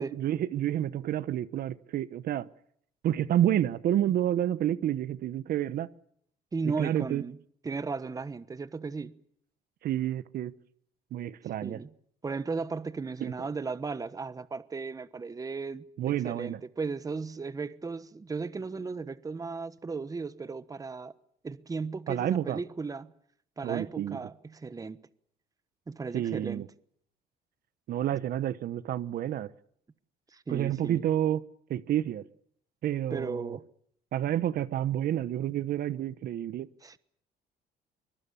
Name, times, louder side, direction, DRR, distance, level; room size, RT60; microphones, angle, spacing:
voice 1, 0.0-2.5 3.0-5.9 6.8-7.2 9.8-10.5 11.1-11.8 13.2-13.3 16.0-16.6 22.1-22.6 23.6-24.2 26.1-26.7 27.9-29.5 30.5-31.4 31.7-32.2 32.8-33.6 34.1-36.7, right 11 dB, 60° right, 1.0 m, -29 dB
voice 2, 6.5-7.4 7.6-9.2 11.6-11.9 12.2-15.8 16.2-21.1 21.4-23.1 23.6-25.0 25.9-26.6 30.3-31.0 33.1-33.6 36.8-37.0, right 4 dB, 20° right, 1.2 m, -35 dB
24.0 x 21.5 x 7.0 m
cardioid pair, 110°, 17 cm